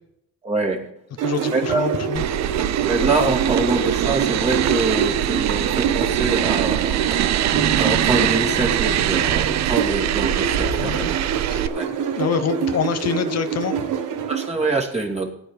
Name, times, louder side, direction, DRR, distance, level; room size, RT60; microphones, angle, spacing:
voice 1, 0.4-0.9 1.2-1.9 2.8-11.2 11.7-11.9 14.3-15.3, right 3 dB, 20° right, 1 dB, 2.4 m, -25 dB
voice 2, 1.2-2.2 10.8-11.1 11.5-11.6 12.1-14.0, left 7 dB, 55° left, 9 dB, 0.8 m, -26 dB
sound 1, 1.2-14.5, right 7 dB, 85° right, 1.2 m, -26 dB
sound 2, 2.1-11.7, right 12 dB, 60° right, 0.6 m, -23 dB
sound 3, 7.5-10.9 11.4-11.5, right 1 dB, 20° left, 1.9 m, -33 dB
17.5 x 9.0 x 3.3 m, 0.79 s
cardioid pair, 90°, 30 cm